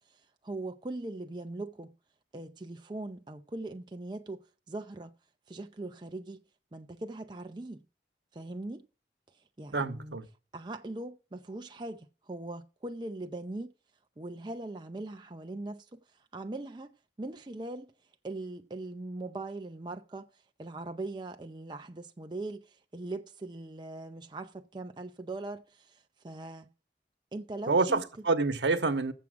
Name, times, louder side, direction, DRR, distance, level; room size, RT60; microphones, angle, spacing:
voice 1, 0.1-1.9 2.3-5.1 5.5-6.4 6.7-7.8 8.3-8.9 9.6-10.2 10.5-13.7 14.2-16.0 16.3-17.9 18.2-20.3 20.6-26.7 27.3-28.1, right 2 dB, 25° right, 0.5 m, -40 dB
voice 2, 9.7-10.3 27.7-29.1, right 3 dB, 80° right, 1.0 m, -27 dB
7.3 x 7.2 x 7.5 m
head